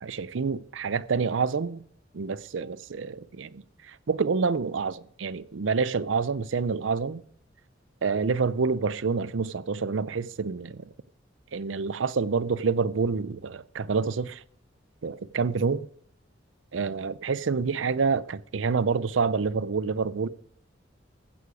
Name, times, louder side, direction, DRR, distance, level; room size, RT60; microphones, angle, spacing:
voice 1, 0.0-1.8 2.1-7.2 8.0-10.9 11.5-14.4 15.0-15.9 16.7-20.3, right 5 dB, 85° right, 0.6 m, -27 dB
15.0 x 9.5 x 5.1 m
head